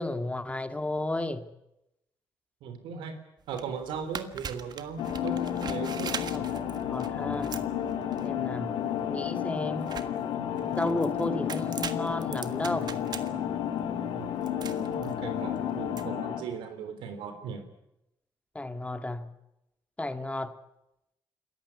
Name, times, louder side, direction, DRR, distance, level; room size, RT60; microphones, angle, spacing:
voice 1, 0.0-1.5 6.5-7.5 8.2-8.8 9.1-10.0 10.7-12.9 18.6-19.3 20.0-20.6, left 2 dB, 15° left, 9 dB, 1.8 m, -33 dB
voice 2, 2.6-3.2 3.5-5.4 5.7-6.2 14.1-14.4 14.9-17.6, right 6 dB, 90° right, 9 dB, 3.2 m, -38 dB
sound 1, 3.4-16.0, right 7 dB, 60° right, 1.5 m, -42 dB
sound 2, 5.0-16.4, left 9 dB, 85° left, 2.2 m, -32 dB
27.0 x 14.5 x 9.8 m, 0.90 s
cardioid pair, 70°, 8 cm